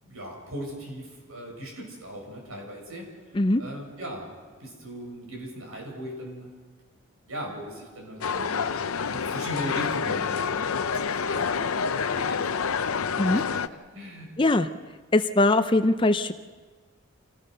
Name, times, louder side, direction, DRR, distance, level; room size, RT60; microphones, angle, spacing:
voice 1, 0.0-3.1 3.6-4.3 4.6-6.5 7.3-8.6 9.1-10.6 11.1-12.8 13.3-13.6 13.9-14.5, equal, 75° right, 0 dB, 7.1 m, -38 dB
sound 1, 8.2-13.7, left 6 dB, 80° left, 0.6 m, -28 dB
voice 2, 14.4-14.7 15.1-16.3, left 2 dB, 20° left, 10 dB, 0.5 m, -21 dB
27.0 x 17.0 x 6.6 m, 1.4 s
head